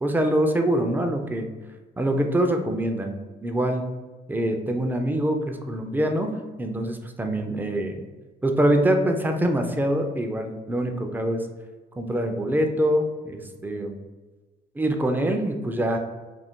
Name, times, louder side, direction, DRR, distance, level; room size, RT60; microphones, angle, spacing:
voice 1, 0.0-1.5 2.0-3.1 3.4-3.8 4.3-6.3 6.6-8.0 8.4-11.4 12.0-13.9 14.8-16.0, right 1 dB, 10° right, 4 dB, 0.3 m, -24 dB
2.5 x 2.1 x 3.5 m, 1.3 s
cardioid pair, 90°, 20 cm